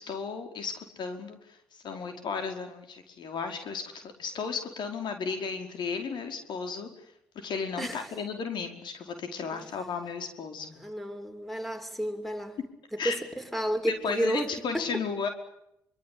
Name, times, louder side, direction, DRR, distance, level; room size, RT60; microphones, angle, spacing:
voice 1, 0.0-1.6 1.8-6.9 7.3-10.7 13.0-13.2 14.0-15.3, left 5 dB, 60° left, 5.1 m, -34 dB
voice 2, 7.8-8.1 9.5-9.8 10.7-12.6 12.9-14.9, right 1 dB, ahead, 6.8 m, -32 dB
25.5 x 25.5 x 8.8 m
hypercardioid pair, 55°, 9 cm